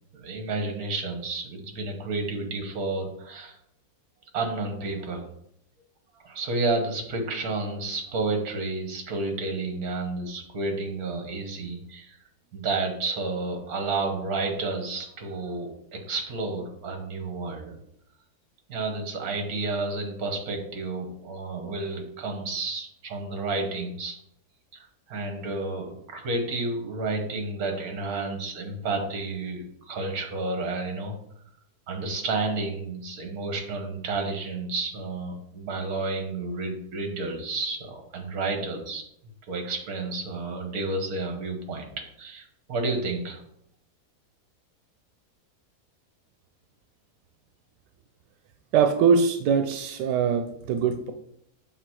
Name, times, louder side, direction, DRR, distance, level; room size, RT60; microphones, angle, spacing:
voice 1, 0.1-3.6 4.3-5.3 6.2-12.2 12.5-17.7 18.7-24.2 24.7-31.1 31.9-39.0 39.5-41.9 42.2-43.4, right 3 dB, 65° right, 4 dB, 1.7 m, -31 dB
voice 2, 48.7-51.1, right 6 dB, 90° right, 7 dB, 1.2 m, -22 dB
6.7 x 3.7 x 4.7 m, 0.74 s
omnidirectional pair, 1.8 m